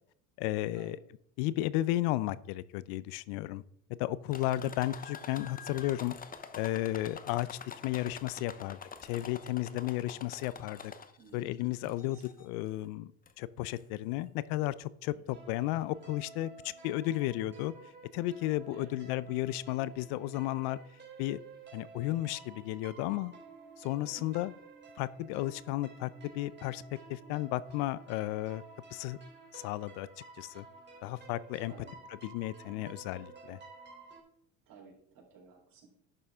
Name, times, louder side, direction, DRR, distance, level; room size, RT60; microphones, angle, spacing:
voice 1, 0.4-1.0 1.4-3.6 4.0-6.2 6.6-10.9 11.3-13.1 13.4-17.7 18.1-20.8 21.2-21.4 21.7-23.3 23.8-24.5 25.0-26.8 27.1-28.6 28.9-29.2 29.5-30.1 30.4-30.7 31.0-31.7 32.2-33.6, left 15 dB, 70° left, 18 dB, 0.6 m, -33 dB
sound 1, 4.3-11.3 11.8-12.5 13.3-13.4 13.8-13.9, left 6 dB, 20° left, 0.8 m, -47 dB
voice 2, 8.4-8.7 11.2-11.5 12.0-12.3 15.1-15.4 18.7-19.0 24.0-24.3 31.7-31.9 34.7-36.0, right 5 dB, 55° right, 0 dB, 3.8 m, -56 dB
sound 2, 15.3-34.2, right 4 dB, 25° right, 3.2 m, -53 dB
11.0 x 6.8 x 3.6 m, 0.68 s
supercardioid pair, 100°, 41 cm